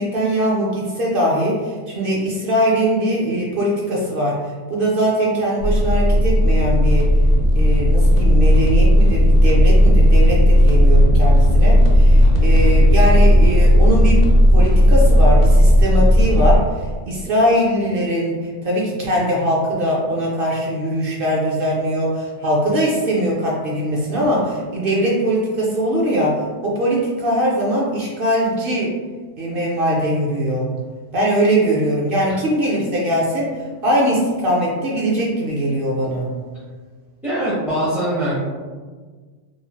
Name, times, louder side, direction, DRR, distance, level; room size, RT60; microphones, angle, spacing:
voice 1, 0.0-7.1 7.5-14.2 14.5-28.9 29.4-30.7 31.1-36.3, equal, 60° right, -4 dB, 0.7 m, -21 dB
sound 1, 5.6-16.6, equal, 90° left, 0.9 m, -13 dB
voice 2, 37.2-38.4, right 1 dB, ahead, -11 dB, 0.5 m, -22 dB
3.0 x 2.6 x 2.2 m, 1.5 s
omnidirectional pair, 1.1 m